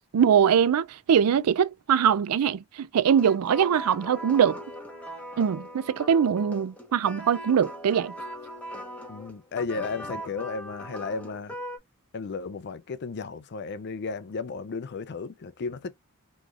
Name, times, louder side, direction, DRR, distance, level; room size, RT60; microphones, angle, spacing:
voice 1, 0.1-4.6 5.4-8.1, right 8 dB, 80° right, 0.4 m, -22 dB
sound 1, 3.1-11.8, equal, 5° left, 1.0 m, -40 dB
voice 2, 9.1-11.6 12.1-15.9, left 4 dB, 50° left, 0.4 m, -34 dB
3.8 x 3.1 x 2.4 m
head